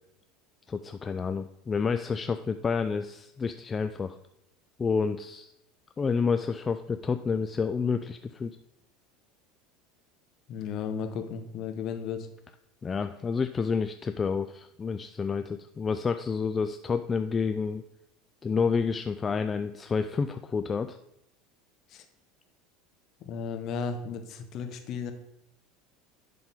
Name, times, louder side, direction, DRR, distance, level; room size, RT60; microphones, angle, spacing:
voice 1, 0.7-4.2 4.8-5.5 6.0-8.6 12.8-17.8 18.4-21.0, left 5 dB, 25° left, 9 dB, 0.3 m, -29 dB
voice 2, 10.5-12.3 21.9-22.0 23.2-25.1, left 6 dB, 50° left, 6 dB, 1.0 m, -34 dB
11.0 x 3.9 x 3.6 m, 0.82 s
hypercardioid pair, 75°, 0 cm